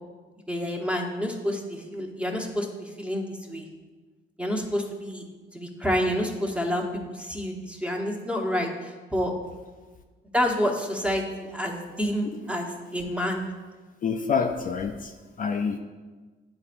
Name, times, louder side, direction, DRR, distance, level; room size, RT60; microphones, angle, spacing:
voice 1, 0.5-3.7 4.4-5.2 5.5-9.3 10.3-13.4, equal, 5° right, 1 dB, 0.9 m, -28 dB
voice 2, 14.0-15.8, left 5 dB, 45° left, 5 dB, 0.4 m, -27 dB
9.8 x 4.0 x 2.5 m, 1.3 s
cardioid pair, 90°, 20 cm